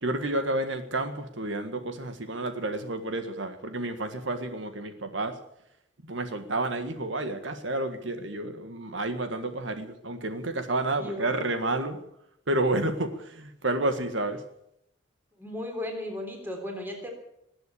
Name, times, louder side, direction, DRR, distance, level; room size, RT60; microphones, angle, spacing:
voice 1, 0.0-5.4 6.0-12.0 12.5-14.4, right 2 dB, 75° right, 8 dB, 1.7 m, -30 dB
voice 2, 11.0-11.3 15.4-17.1, left 1 dB, 10° right, 2 dB, 3.5 m, -35 dB
20.0 x 8.1 x 8.5 m, 0.79 s
head